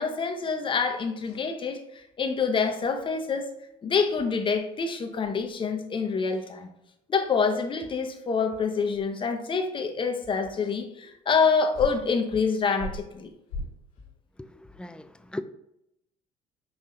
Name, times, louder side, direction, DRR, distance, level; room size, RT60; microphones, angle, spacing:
voice 1, 0.0-3.5 3.8-6.7 7.1-13.3, left 5 dB, 35° left, 0.8 m, -26 dB
sound 1, 1.2-1.4 4.1-4.8 5.2-5.5 6.3-6.6 7.7-7.8 8.8-9.1 10.5-10.8 11.4-11.5 11.7-12.1 12.7-14.0, left 1 dB, 80° left, 1.5 m, -40 dB
voice 2, 14.4-15.4, left 1 dB, 5° left, 0.3 m, -38 dB
5.4 x 2.7 x 3.2 m
hypercardioid pair, 70°, 15 cm